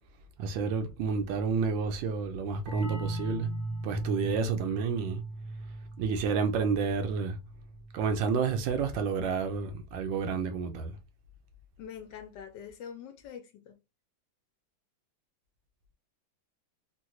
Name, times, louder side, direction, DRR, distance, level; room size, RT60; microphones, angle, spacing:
voice 1, 0.4-3.5 3.8-5.2 6.0-7.4 7.9-11.0, right 5 dB, 75° right, 1.2 m, -30 dB
sound 1, 2.7-8.1, right 2 dB, 55° right, 0.9 m, -37 dB
voice 2, 11.8-13.8, left 8 dB, 70° left, 1.1 m, -44 dB
3.9 x 2.2 x 2.9 m
omnidirectional pair, 2.2 m